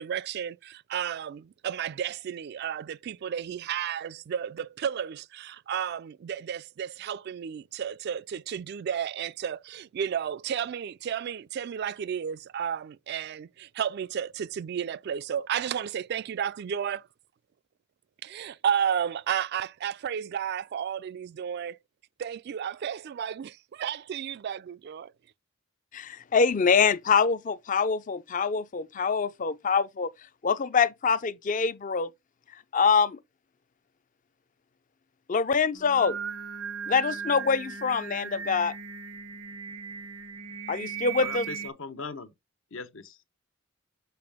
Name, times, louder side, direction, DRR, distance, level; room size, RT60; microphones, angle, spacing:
voice 1, 0.0-17.1 18.2-21.8 22.2-25.1, right 8 dB, 55° right, 0.3 m, -32 dB
voice 2, 25.9-30.1 30.4-32.1 32.7-33.2 35.3-36.2 36.9-38.7 40.7-41.5, left 5 dB, 40° left, 0.5 m, -25 dB
Singing, 35.7-41.7, right 6 dB, 85° right, 0.9 m, -37 dB
voice 3, 41.2-42.3 42.7-43.3, left 4 dB, 70° left, 0.9 m, -39 dB
6.8 x 5.5 x 3.5 m
head